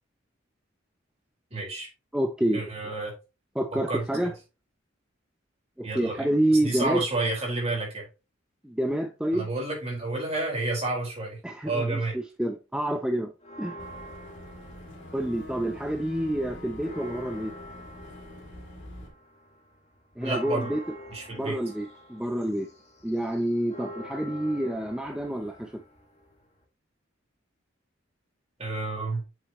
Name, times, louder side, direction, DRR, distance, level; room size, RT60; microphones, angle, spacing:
voice 1, 1.5-1.9 2.5-3.1 3.9-4.3 5.8-6.2 6.5-8.0 9.3-11.4 11.6-12.2 20.2-20.7 21.1-21.6 28.6-29.2, right 2 dB, 30° right, 4.6 m, -30 dB
voice 2, 2.1-2.6 3.5-4.3 5.8-7.0 8.6-9.5 11.4-13.3 13.6-13.8 15.1-17.5 20.2-20.8 21.4-22.7 23.0-25.8, right 1 dB, 5° right, 0.6 m, -28 dB
sound 1, 13.4-15.8 16.1-26.6, equal, 35° left, 2.0 m, -46 dB
Boat Water vehicle / Engine, 13.8-19.1, left 1 dB, 60° left, 3.2 m, -45 dB
8.0 x 6.7 x 3.0 m
head